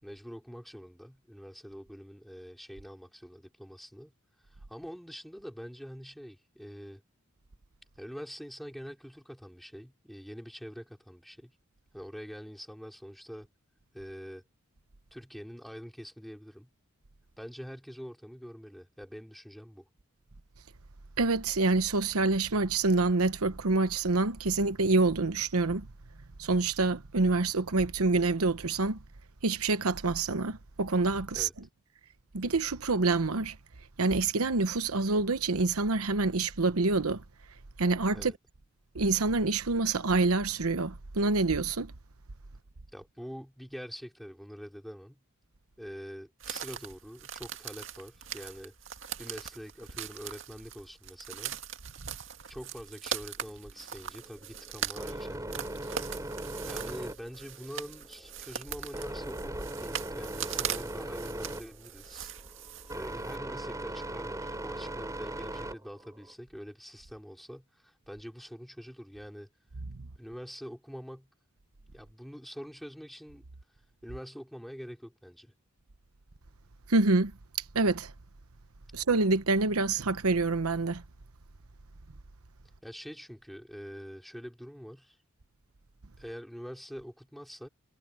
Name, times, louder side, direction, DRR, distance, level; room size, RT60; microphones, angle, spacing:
voice 1, 0.0-4.1 4.4-7.0 8.0-11.5 11.9-13.5 13.9-14.4 15.1-16.7 17.4-19.8 31.3-31.5 38.1-38.4 42.9-45.2 45.8-48.7 49.2-51.6 52.5-55.7 56.6-62.3 62.9-69.5 70.2-71.3 71.8-73.5 74.0-75.5 82.8-85.2 86.2-87.7, equal, ahead, 4.0 m, -45 dB
voice 2, 21.2-25.9 26.4-29.0 29.4-31.5 32.3-33.6 34.0-37.2 37.8-38.3 38.9-41.9 76.9-77.3 77.7-78.1 78.9-81.0, right 3 dB, 90° right, 1.0 m, -27 dB
sound 1, 46.4-63.4, right 8 dB, 60° right, 2.2 m, -40 dB
sound 2, 53.3-66.3, right 1 dB, 15° right, 3.1 m, -40 dB
head